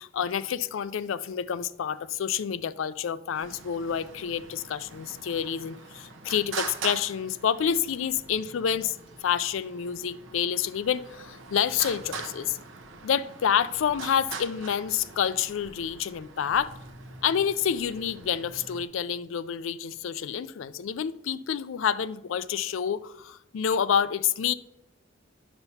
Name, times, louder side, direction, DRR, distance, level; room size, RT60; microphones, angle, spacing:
voice 1, 0.0-9.0 9.2-12.6 13.0-16.7 17.2-24.5, left 8 dB, 75° left, 0.4 m, -28 dB
Traffic noise roadway noise, 3.3-18.8, right 5 dB, 80° right, 0.8 m, -43 dB
9.8 x 6.8 x 2.8 m
head